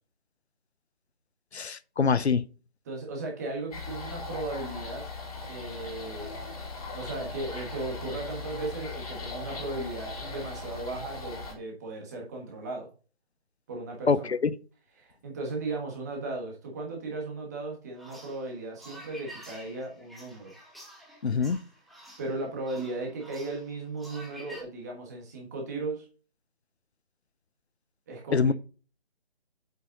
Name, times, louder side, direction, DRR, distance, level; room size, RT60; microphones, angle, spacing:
voice 1, 1.5-2.4 14.1-14.5 21.2-21.6 28.3-28.5, left 5 dB, 90° left, 0.7 m, -24 dB
voice 2, 2.8-5.0 5.5-6.4 6.9-12.9 13.7-14.3 15.0-20.5 21.9-26.0 28.1-28.5, right 2 dB, 15° right, 1.4 m, -36 dB
sound 1, 3.7-11.5, left 3 dB, 35° left, 2.8 m, -39 dB
sound 2, 18.0-24.6, right 1 dB, ahead, 0.4 m, -49 dB
7.6 x 5.7 x 3.8 m
figure-of-eight pair, 160°, 32 cm